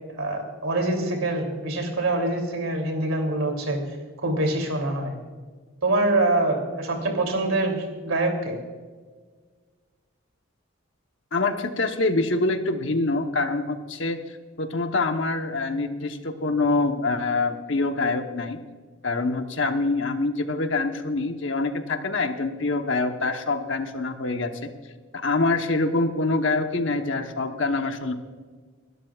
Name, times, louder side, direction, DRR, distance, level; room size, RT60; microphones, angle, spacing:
voice 1, 0.2-3.8 4.2-5.1 5.8-8.6, right 2 dB, 90° right, 3 dB, 3.1 m, -25 dB
voice 2, 11.3-18.6 19.0-24.5 25.1-28.1, left 3 dB, 65° left, 6 dB, 1.1 m, -25 dB
23.5 x 12.5 x 2.4 m, 1.5 s
head